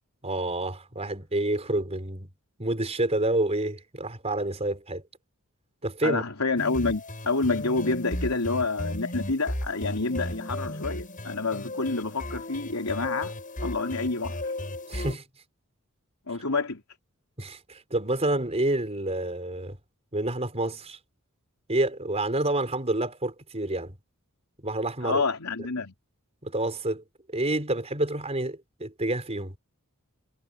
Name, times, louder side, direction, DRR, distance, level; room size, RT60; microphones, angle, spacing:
voice 1, 0.2-2.3 2.6-5.0 5.8-6.2 14.9-15.2 17.4-19.8 20.1-21.0 21.7-24.0 24.6-25.2 26.4-29.5, right 2 dB, 30° right, 5.2 m, -28 dB
voice 2, 6.0-13.3 13.6-14.5 16.3-16.8 25.0-25.9, left 3 dB, 80° left, 3.6 m, -28 dB
sound 1, 6.6-15.2, left 1 dB, 40° left, 7.9 m, -35 dB
head